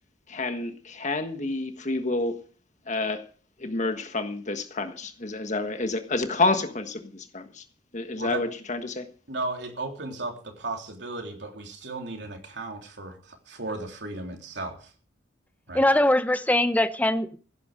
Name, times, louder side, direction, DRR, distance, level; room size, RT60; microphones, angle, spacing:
voice 1, 0.3-2.3 2.9-3.2 3.6-7.6 7.9-9.1, left 3 dB, 40° left, 7 dB, 1.5 m, -29 dB
voice 2, 9.3-14.9 15.7-15.9, right 2 dB, 65° right, 3 dB, 3.5 m, -35 dB
voice 3, 15.7-17.4, left 1 dB, 10° left, 11 dB, 0.8 m, -22 dB
16.5 x 11.0 x 5.1 m, 0.40 s
head